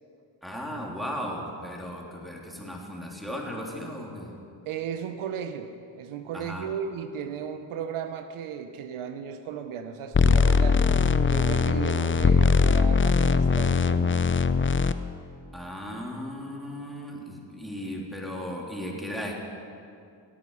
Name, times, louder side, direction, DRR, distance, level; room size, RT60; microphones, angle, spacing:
voice 1, 0.4-4.3 6.3-6.7 15.5-19.3, equal, ahead, -1 dB, 3.2 m, -36 dB
voice 2, 4.6-14.2, right 7 dB, 80° right, 9 dB, 0.8 m, -35 dB
sound 1, 10.1-14.9, left 5 dB, 25° left, 0.6 m, -21 dB
17.5 x 8.6 x 5.6 m, 2.5 s
supercardioid pair, 45°, 50 cm